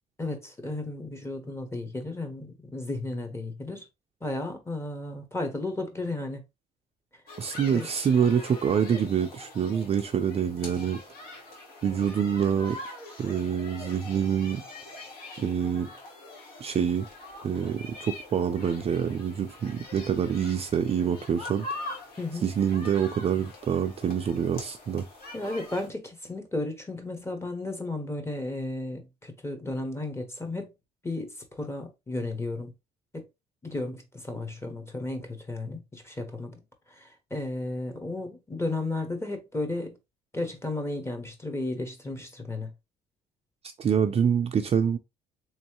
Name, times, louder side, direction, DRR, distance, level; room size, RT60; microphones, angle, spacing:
voice 1, 0.2-3.9 4.2-6.4 7.7-7.9 22.2-22.5 25.3-30.7 31.0-32.7 33.1-33.3 33.6-36.6 36.9-40.0 40.3-42.7, left 2 dB, 15° left, 1.1 m, -34 dB
sound 1, 7.3-25.9, left 2 dB, 65° left, 1.6 m, -43 dB
voice 2, 7.4-11.0 11.8-12.8 13.2-14.6 15.4-15.9 16.6-17.1 17.4-22.0 22.4-25.1 43.8-45.0, right 7 dB, 35° right, 0.5 m, -26 dB
3.7 x 3.1 x 3.0 m
cardioid pair, 110°, 17 cm